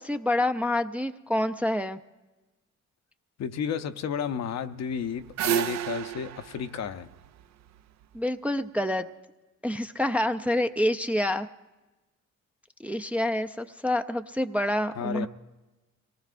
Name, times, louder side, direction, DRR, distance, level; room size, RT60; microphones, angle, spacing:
voice 1, 0.0-2.0 8.1-9.1 9.6-11.5 12.8-15.3, left 1 dB, 5° right, 6 dB, 0.4 m, -27 dB
voice 2, 3.4-7.1 15.0-15.3, left 7 dB, 60° left, 10 dB, 0.7 m, -32 dB
sound 1, 4.9-8.0, right 12 dB, 65° right, 0.5 m, -31 dB
24.0 x 18.5 x 2.5 m, 1.1 s
cardioid pair, 90°, 30 cm